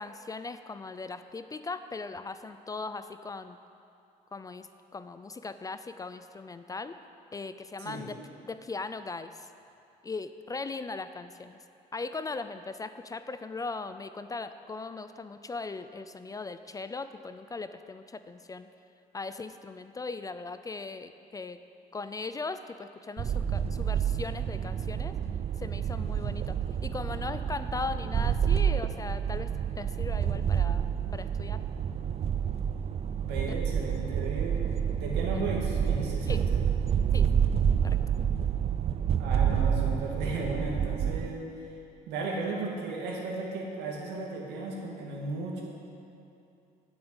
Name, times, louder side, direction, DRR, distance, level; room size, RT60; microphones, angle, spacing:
voice 1, 0.0-3.6 4.3-7.0 7.3-8.2 8.4-9.5 10.0-11.6 11.9-18.7 19.1-21.6 21.9-25.2 25.6-31.6 33.4-33.6 35.3-35.4 36.3-36.4 37.1-37.3 37.8-38.0, left 3 dB, 20° left, 11 dB, 0.4 m, -39 dB
sound 1, 23.2-41.3, right 8 dB, 40° right, 0.4 m, -28 dB
voice 2, 33.1-36.6 37.8-37.9 39.2-41.4 42.1-45.6, right 2 dB, 80° right, -2 dB, 2.3 m, -35 dB
9.1 x 7.0 x 8.8 m, 2.7 s
cardioid pair, 110°, 17 cm